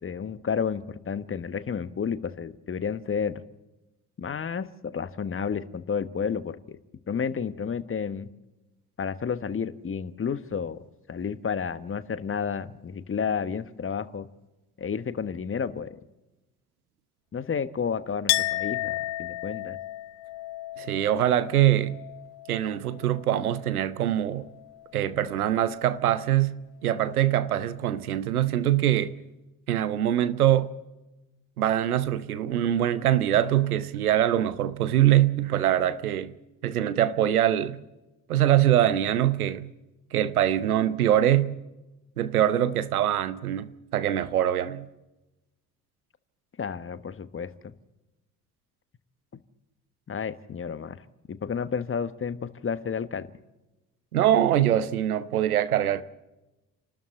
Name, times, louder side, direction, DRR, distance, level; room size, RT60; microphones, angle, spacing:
voice 1, 0.0-3.4 4.2-6.8 7.1-8.3 9.0-10.8 11.1-14.3 14.8-16.0 17.3-19.8 46.6-47.7 50.1-51.0 51.3-53.3, left 6 dB, 30° left, 1.3 m, -31 dB
Chink clink, 18.3-23.8 24.1-25.0, left 17 dB, 60° left, 0.8 m, -33 dB
voice 2, 20.8-22.0 22.5-24.5 24.9-29.1 29.7-30.7 31.6-36.3 36.6-37.8 38.3-39.7 40.1-41.5 42.2-44.9 54.1-56.0, right 12 dB, 80° right, 0.9 m, -23 dB
28.0 x 13.0 x 7.8 m
figure-of-eight pair, 50°, 43 cm